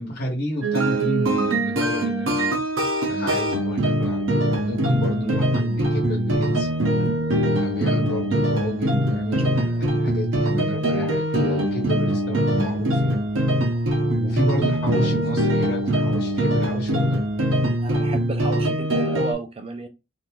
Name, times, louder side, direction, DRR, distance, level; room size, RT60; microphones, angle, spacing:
voice 1, 0.0-2.5 3.1-6.7 7.6-13.2 14.1-17.2, equal, 50° left, 1.1 m, -30 dB
sound 1, 0.6-19.3, right 1 dB, 75° right, 0.7 m, -22 dB
voice 2, 17.8-19.9, right 3 dB, 30° right, 0.5 m, -33 dB
3.1 x 2.6 x 2.3 m
head